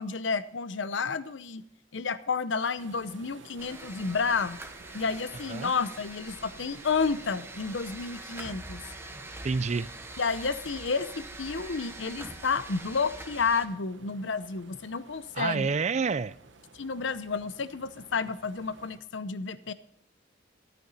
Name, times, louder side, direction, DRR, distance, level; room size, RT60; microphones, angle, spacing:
voice 1, 0.0-1.6 1.9-4.6 4.9-8.8 10.2-15.7 16.7-19.7, left 5 dB, 80° left, 15 dB, 0.7 m, -31 dB
sound 1, 2.8-19.0, right 3 dB, 80° right, 1.0 m, -54 dB
sound 2, 3.6-13.7, right 2 dB, 15° right, 1.0 m, -44 dB
voice 2, 9.4-9.9 15.3-16.4, right 5 dB, 40° right, 18 dB, 0.4 m, -28 dB
14.5 x 9.3 x 4.1 m, 0.73 s
head